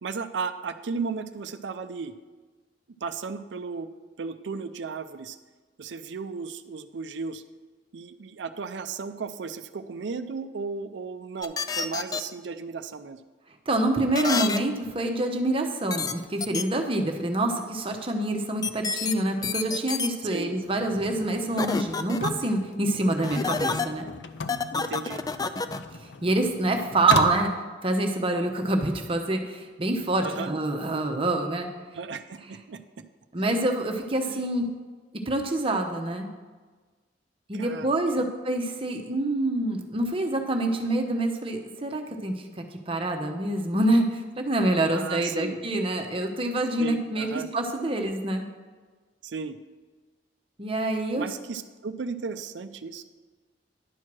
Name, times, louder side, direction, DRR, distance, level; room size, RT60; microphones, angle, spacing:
voice 1, 0.0-2.1 3.0-3.9 4.2-5.4 5.8-7.4 7.9-13.2 20.3-20.6 24.7-25.2 30.2-30.5 31.9-33.1 34.3-34.5 37.5-38.3 44.9-45.6 46.8-47.5 49.2-49.6 51.1-53.0, right 5 dB, 80° right, 10 dB, 0.5 m, -35 dB
sound 1, 11.4-12.2 14.1-14.6 15.9-16.1 16.4-16.6 18.6-19.1 19.4-20.1 21.6-22.3 23.2-23.9 24.5-25.8, left 5 dB, 20° left, 0.3 m, -28 dB
voice 2, 13.7-24.1 26.2-27.5 27.8-31.7 33.3-34.7 35.3-36.3 37.5-47.3 47.5-48.5 50.6-51.3, right 2 dB, 30° right, 4 dB, 0.9 m, -26 dB
sound 2, 20.6-27.6, left 3 dB, 75° left, 0.5 m, -37 dB
10.5 x 4.6 x 6.1 m, 1.4 s
head